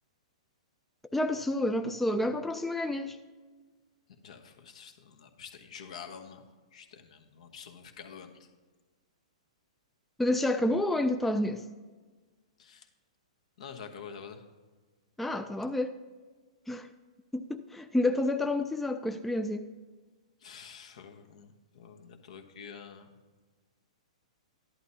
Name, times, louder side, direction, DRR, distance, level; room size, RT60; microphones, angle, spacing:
voice 1, 1.1-3.2 10.2-11.6 15.2-16.0 16.7-16.9 17.3-19.7, left 1 dB, 5° left, 7 dB, 0.4 m, -29 dB
voice 2, 4.2-6.4 6.7-8.5 12.6-12.9 13.6-14.4 20.4-23.1, left 7 dB, 70° left, 5 dB, 1.2 m, -47 dB
13.0 x 11.0 x 2.8 m, 1.4 s
hypercardioid pair, 130°, 4 cm